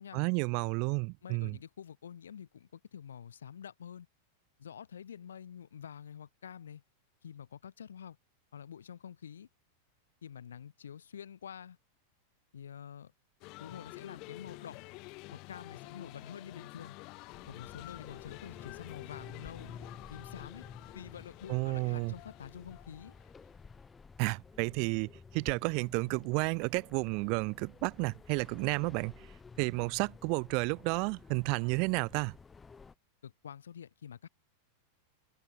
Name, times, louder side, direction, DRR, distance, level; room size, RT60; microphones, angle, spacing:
voice 1, 0.1-1.6 21.5-22.1 24.2-29.3 29.6-32.4, right 34 dB, 45° right, 0.4 m, -31 dB
voice 2, 1.2-4.1 4.6-6.8 7.2-8.2 8.5-9.5 10.2-11.8 12.5-13.1 13.6-14.8 15.3-16.9 17.5-19.7 20.1-20.7 20.9-23.2 33.2-34.3, left 8 dB, 65° left, 7.6 m, -47 dB
sound 1, 13.4-23.7, left 25 dB, 40° left, 4.0 m, -49 dB
sound 2, 17.3-32.9, left 4 dB, 15° left, 2.9 m, -53 dB
figure-of-eight pair, 90°, 0 cm